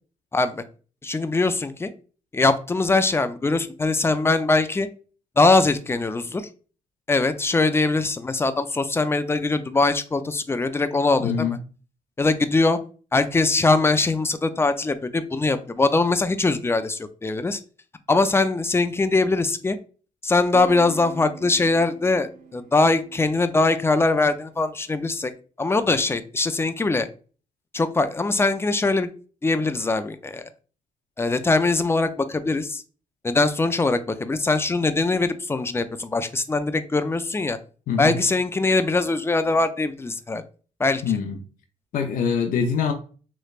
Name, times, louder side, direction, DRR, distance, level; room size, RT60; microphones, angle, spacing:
voice 1, 0.3-0.6 1.0-1.9 2.3-4.9 5.4-6.5 7.1-11.5 12.2-12.8 13.1-17.6 18.1-19.8 20.2-25.3 25.6-27.1 27.7-29.1 29.4-30.5 31.2-32.8 33.2-37.6 38.0-40.4 40.8-41.0, left 3 dB, 15° left, 0.4 m, -22 dB
voice 2, 11.2-11.6 37.9-38.2 41.0-41.4 41.9-42.9, left 6 dB, 70° left, 0.6 m, -24 dB
sound 1, 20.4-24.6, right 6 dB, 75° right, 0.7 m, -41 dB
3.2 x 3.0 x 2.3 m
cardioid pair, 75°, 15 cm